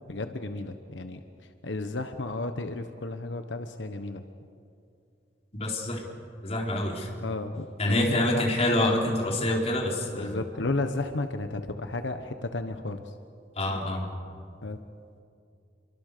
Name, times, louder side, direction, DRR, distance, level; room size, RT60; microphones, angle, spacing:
voice 1, 0.1-1.2 1.6-4.2 7.2-8.8 10.1-13.0 14.6-14.8, left 2 dB, 90° left, 7 dB, 1.2 m, -33 dB
voice 2, 5.6-6.0 6.4-7.1 7.8-10.4 13.6-14.1, left 1 dB, 35° left, -1 dB, 4.3 m, -26 dB
28.5 x 23.5 x 6.8 m, 2.5 s
head